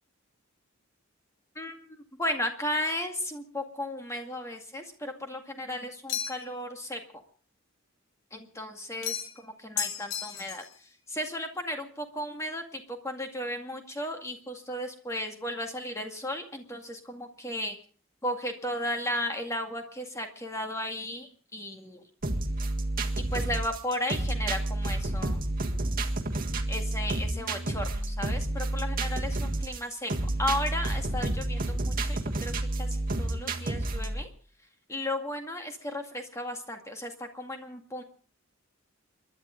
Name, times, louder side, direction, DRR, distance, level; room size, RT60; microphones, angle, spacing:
voice 1, 1.6-7.0 8.3-10.6 11.1-17.8 18.2-22.0 23.2-25.4 26.7-30.1 30.4-34.3 34.9-38.0, left 1 dB, 15° left, 3 dB, 2.1 m, -35 dB
sound 1, 6.1-6.6 9.0-9.4 9.8-10.7, left 8 dB, 70° left, 2.2 m, -34 dB
sound 2, 22.2-34.2, right 2 dB, 40° right, 1.6 m, -30 dB
29.5 x 11.5 x 3.8 m, 0.41 s
head